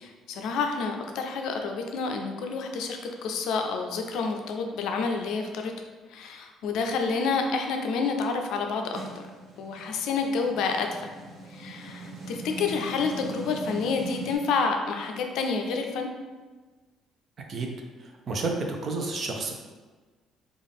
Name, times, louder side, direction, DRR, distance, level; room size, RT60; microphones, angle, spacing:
voice 1, 0.0-5.7 6.1-9.2 9.6-11.1 11.5-16.1, left 4 dB, 70° left, 4 dB, 0.4 m, -29 dB
sound 1, 8.9-14.4, right 2 dB, 70° right, 1.2 m, -40 dB
voice 2, 18.0-19.5, right 3 dB, 35° right, 2 dB, 0.5 m, -30 dB
3.7 x 2.4 x 3.5 m, 1.3 s
cardioid pair, 160°, 0 cm